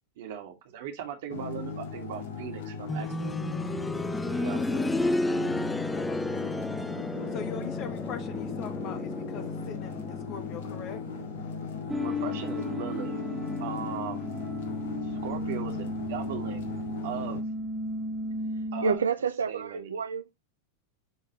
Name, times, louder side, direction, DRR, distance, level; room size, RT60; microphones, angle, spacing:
voice 1, 0.2-3.1 4.3-4.6 12.0-13.1 13.6-14.4 15.0-17.5 18.7-19.0 19.5-19.9, right 9 dB, 55° right, 2.1 m, -38 dB
sound 1, 1.3-17.4, left 5 dB, 60° left, 1.9 m, -38 dB
sound 2, 2.9-13.7 15.0-15.1, left 2 dB, 5° left, 0.3 m, -33 dB
voice 2, 5.2-6.5 7.0-11.0 15.7-16.0, left 8 dB, 35° left, 1.4 m, -42 dB
sound 3, 11.9-19.0, left 1 dB, 10° right, 1.8 m, -34 dB
voice 3, 18.8-20.5, right 6 dB, 70° right, 0.5 m, -29 dB
11.5 x 3.9 x 3.1 m
figure-of-eight pair, 90°, 0 cm